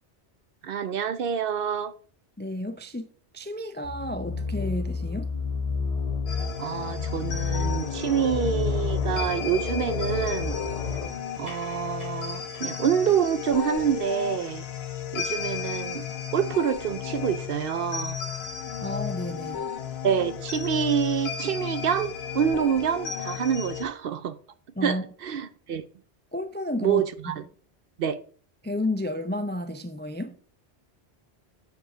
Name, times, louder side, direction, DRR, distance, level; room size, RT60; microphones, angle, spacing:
voice 1, 0.6-1.9 6.6-10.5 11.4-14.6 15.1-16.0 16.3-18.2 20.0-24.3 24.8-25.8 26.8-27.4 28.0-28.2, right 8 dB, 60° right, 0.7 m, -27 dB
voice 2, 2.4-3.1 3.3-5.3 18.8-19.7 24.8-25.0 26.3-27.0 28.6-30.3, left 1 dB, 15° left, 0.3 m, -31 dB
sound 1, 3.8-11.1, left 5 dB, 35° left, 0.8 m, -30 dB
sound 2, 6.3-23.8, left 8 dB, 70° left, 1.1 m, -34 dB
sound 3, 11.2-16.1, left 1 dB, 30° right, 3.8 m, -52 dB
8.2 x 7.0 x 3.8 m
omnidirectional pair, 1.1 m